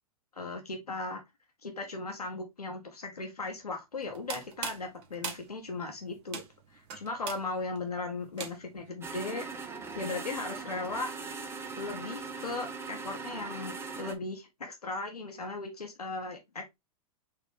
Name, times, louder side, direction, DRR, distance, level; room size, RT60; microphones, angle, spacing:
voice 1, 0.4-1.2 1.6-6.4 6.7-9.5 10.0-11.1 11.8-16.6, left 3 dB, 90° left, 1.2 m, -37 dB
sound 1, 4.0-8.9, right 7 dB, 45° right, 1.2 m, -42 dB
sound 2, 9.0-14.1, right 4 dB, 15° right, 0.8 m, -40 dB
4.9 x 3.1 x 3.3 m
hypercardioid pair, 105°, 19 cm